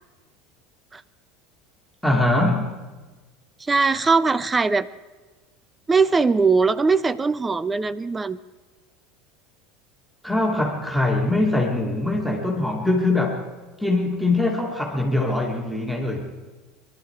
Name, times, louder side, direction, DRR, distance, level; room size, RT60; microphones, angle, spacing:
voice 1, 2.0-2.7 10.2-13.4 13.8-16.2, left 2 dB, ahead, 0 dB, 2.5 m, -22 dB
voice 2, 3.6-4.9 5.9-8.4, right 4 dB, 15° right, 18 dB, 0.5 m, -20 dB
24.5 x 12.0 x 4.7 m, 1.2 s
figure-of-eight pair, 70°, 0 cm